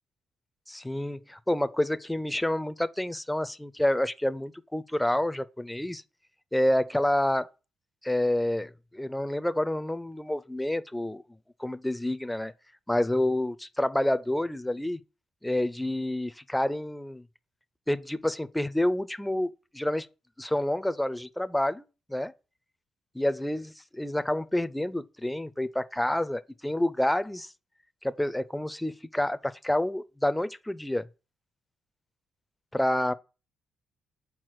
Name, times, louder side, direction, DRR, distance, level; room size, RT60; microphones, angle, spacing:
voice 1, 0.7-6.0 6.5-7.5 8.0-11.2 11.6-12.5 12.9-15.0 15.4-17.2 17.9-20.1 20.4-21.8 22.1-22.3 23.1-27.5 28.0-31.1 32.7-33.1, left 1 dB, 5° left, 0.4 m, -28 dB
4.7 x 4.4 x 6.0 m
cardioid pair, 90°, 0 cm